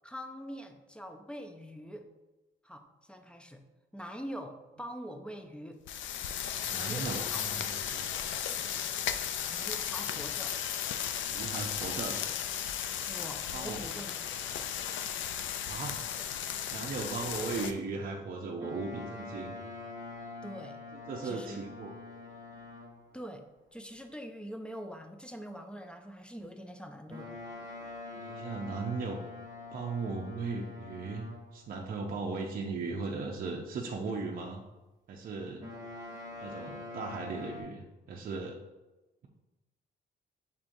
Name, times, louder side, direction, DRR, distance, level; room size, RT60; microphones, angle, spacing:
voice 1, 0.0-2.1 2.6-3.6 3.9-5.8 6.7-7.4 8.0-8.1 9.5-10.6 13.1-14.3 20.4-20.8 21.2-21.6 23.1-23.4 23.7-27.4, equal, 5° left, 5 dB, 0.4 m, -44 dB
sound 1, 5.9-17.7, left 9 dB, 75° left, 0.4 m, -35 dB
voice 2, 6.6-8.1 11.3-12.3 13.5-13.9 15.4-16.1 16.7-19.6 21.1-21.9 28.2-29.2 29.7-31.3 31.5-34.6 35.1-35.6 36.4-38.6, right 4 dB, 50° right, 0 dB, 0.6 m, -37 dB
Boat Water vehicle, 18.6-23.1 27.1-31.6 35.6-37.6, left 3 dB, 20° right, 1.1 m, -45 dB
5.5 x 3.6 x 2.6 m, 1.1 s
cardioid pair, 90°, 20 cm